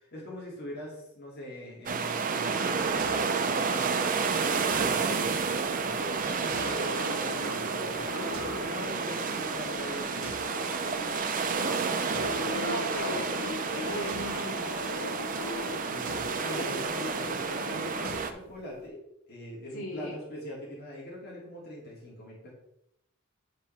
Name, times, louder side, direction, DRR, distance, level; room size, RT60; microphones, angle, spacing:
voice 1, 0.0-4.4 4.7-5.4 5.7-8.1 8.6-10.5 15.9-19.0 19.3-22.5, left 1 dB, 50° left, -5 dB, 2.1 m, -42 dB
sound 1, 1.9-18.3, right 5 dB, 40° right, 0.6 m, -30 dB
sound 2, 2.5-18.9, right 2 dB, 90° right, 1.2 m, -50 dB
sound 3, 6.5-18.2, left 3 dB, 70° left, 0.5 m, -39 dB
voice 2, 12.5-14.7 19.7-20.2, equal, 85° left, -3 dB, 2.6 m, -38 dB
9.2 x 3.2 x 5.6 m, 0.80 s
head